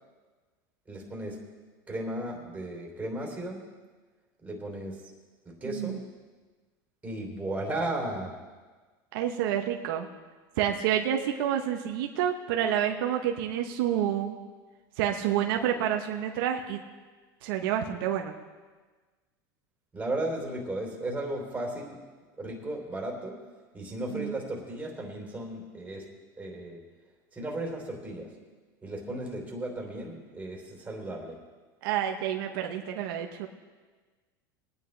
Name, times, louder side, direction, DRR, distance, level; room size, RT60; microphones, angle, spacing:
voice 1, 0.9-1.5 1.9-3.7 4.4-5.1 5.4-6.0 7.0-8.4 19.9-22.1 22.4-23.5 23.7-26.1 26.4-26.8 27.3-28.4 28.8-31.4, right 1 dB, 15° right, -1 dB, 3.4 m, -35 dB
voice 2, 5.6-6.0 9.1-10.1 10.6-14.4 15.0-16.8 17.4-18.3 24.1-24.4 31.8-33.5, right 10 dB, 75° right, 3 dB, 1.0 m, -28 dB
22.0 x 9.7 x 3.4 m, 1.4 s
supercardioid pair, 125°, 12 cm